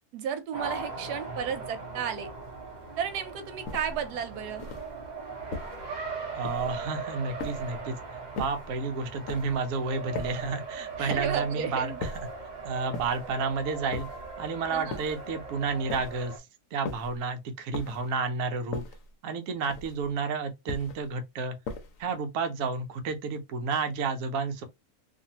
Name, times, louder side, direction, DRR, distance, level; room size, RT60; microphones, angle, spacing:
voice 1, 0.1-2.3 3.0-4.7 11.0-12.0 14.7-15.0, right 8 dB, 85° right, 1.2 m, -33 dB
Race car auto racing, 0.5-16.4, right 4 dB, 50° right, 0.5 m, -39 dB
sound 1, 3.7-4.1 4.6-5.0 5.5-5.9 6.4-6.8 7.4-7.8 8.4-8.7 9.3-9.6 10.2-10.5 11.1-11.5 12.0-12.4 12.9-13.3 13.9-14.3 14.9-15.3 15.9-16.3 16.9-17.2 17.7-18.1 18.7-19.1 19.7-20.1 20.7-21.1 21.7-22.1, left 3 dB, 65° left, 1.0 m, -39 dB
voice 2, 6.3-8.0 8.4-12.1 12.6-14.1 14.4-18.8 19.2-21.6 22.0-24.6, right 4 dB, 65° right, 0.9 m, -31 dB
2.6 x 2.5 x 2.8 m
omnidirectional pair, 1.7 m